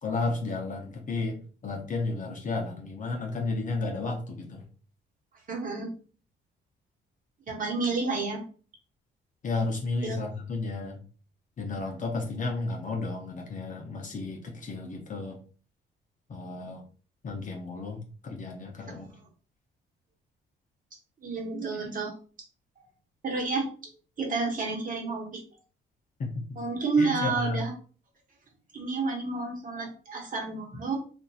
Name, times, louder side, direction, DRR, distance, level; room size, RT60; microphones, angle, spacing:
voice 1, 0.0-4.6 9.4-11.0 11.6-15.4 16.3-16.8 17.2-19.1 26.2-26.4 27.0-27.6, left 3 dB, 40° left, 1 dB, 0.6 m, -33 dB
voice 2, 5.5-5.9 7.5-8.4 10.0-10.2 21.2-22.1 23.2-23.7 24.2-25.4 26.6-27.7 28.7-31.0, right 3 dB, 45° right, -1 dB, 1.1 m, -30 dB
2.8 x 2.4 x 2.3 m, 0.40 s
cardioid pair, 90°, 20 cm